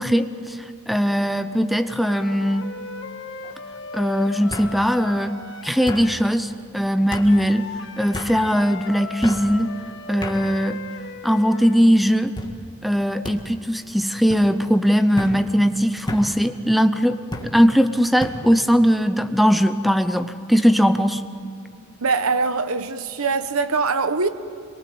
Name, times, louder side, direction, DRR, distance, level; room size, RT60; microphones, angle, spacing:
voice 1, 0.0-2.7 3.9-7.7 8.0-9.7 10.1-10.8 11.2-12.3 12.8-21.2, equal, ahead, 0.6 m, -20 dB
sound 1, 1.0-1.4 1.8-2.4 3.4-3.5 4.5-4.7 5.9-6.1 7.1-7.3 8.1-8.3 9.2-9.4 10.2-10.4 11.1-11.6 12.4-12.5 13.2-13.4 14.3-14.5 15.2-15.4 16.1-16.3 17.3-17.5 18.2-18.4, left 1 dB, 20° left, 1.9 m, -32 dB
sound 2, 2.0-6.3 7.2-11.9, left 4 dB, 55° left, 1.6 m, -37 dB
voice 2, 22.0-24.3, right 4 dB, 75° right, 1.1 m, -22 dB
27.0 x 23.0 x 7.7 m
head